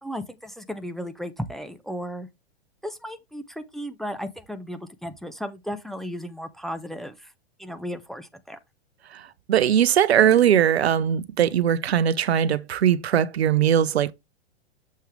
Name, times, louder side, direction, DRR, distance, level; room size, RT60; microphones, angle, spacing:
voice 1, 0.0-2.3 2.8-7.3 7.6-8.6, equal, ahead, 0.7 m, -35 dB
voice 2, 9.5-14.1, right 9 dB, 75° right, 0.7 m, -20 dB
7.4 x 5.6 x 3.3 m
hypercardioid pair, 105°, 32 cm